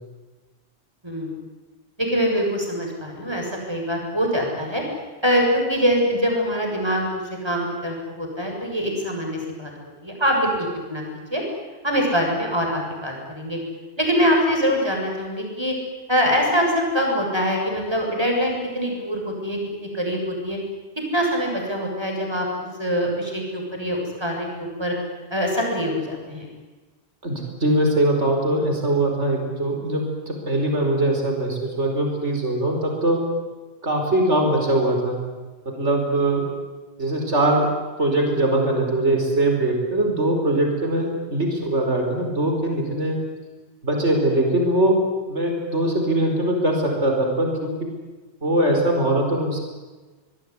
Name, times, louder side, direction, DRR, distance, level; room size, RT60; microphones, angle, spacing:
voice 1, 2.0-4.8 5.2-9.7 10.0-10.5 10.9-11.0 11.3-11.4 11.8-13.6 14.0-15.8 16.1-20.6 21.1-24.9 25.3-26.5, equal, 20° right, 0 dB, 7.4 m, -24 dB
voice 2, 27.2-33.2 33.8-35.2 35.7-36.5 37.0-37.7 38.0-43.2 43.8-45.0 45.3-47.9 48.4-49.6, right 1 dB, 80° right, 2 dB, 5.3 m, -21 dB
26.0 x 21.0 x 9.8 m, 1.3 s
omnidirectional pair, 1.2 m